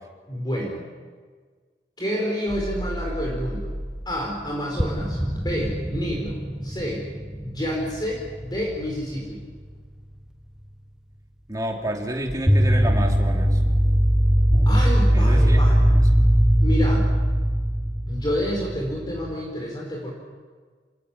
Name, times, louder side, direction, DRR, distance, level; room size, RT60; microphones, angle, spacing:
voice 1, 0.3-0.8 2.0-3.7 4.0-7.1 7.4-9.4 14.7-15.9 16.6-17.1 18.1-20.1, equal, 20° left, -1 dB, 4.6 m, -29 dB
sound 1, 2.5-4.0 4.3-4.4 4.8-9.2 12.3-19.3, equal, 5° right, 1.4 m, -21 dB
voice 2, 11.5-13.6 15.1-15.6 15.9-16.3, right 1 dB, 20° right, 1 dB, 3.2 m, -30 dB
27.0 x 18.5 x 10.0 m, 1.6 s
head